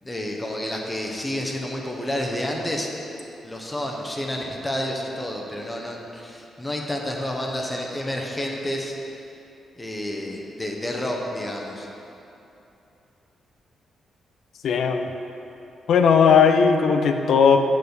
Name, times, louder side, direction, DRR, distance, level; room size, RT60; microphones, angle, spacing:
voice 1, 0.0-2.9 3.4-9.0 9.8-11.9, left 1 dB, 20° left, 0 dB, 0.9 m, -30 dB
voice 2, 14.6-15.1 15.9-17.6, left 6 dB, 70° left, 6 dB, 0.4 m, -17 dB
6.2 x 4.7 x 5.2 m, 2.9 s
hypercardioid pair, 45°, 0 cm